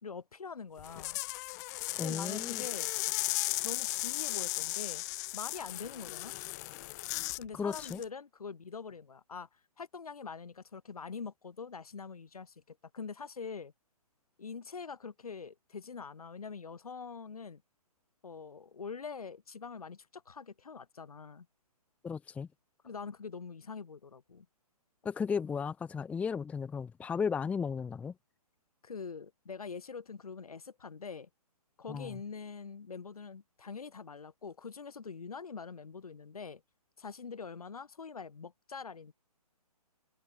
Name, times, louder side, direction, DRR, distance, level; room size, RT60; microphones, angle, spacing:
voice 1, 0.0-1.2 2.0-2.9 3.6-5.0 5.3-6.3 7.3-9.5 9.8-13.7 14.4-17.6 18.2-21.5 22.8-24.5 28.8-31.3 31.8-36.6 37.0-39.1, left 5 dB, 65° left, 5.2 m, -44 dB
sound 1, 0.8-7.4 7.7-8.0, left 24 dB, 25° left, 1.5 m, -36 dB
voice 2, 2.0-2.6 7.5-8.0 22.0-22.5 25.0-28.1 31.9-32.2, left 6 dB, 5° left, 1.0 m, -35 dB
figure-of-eight pair, 135°, 20 cm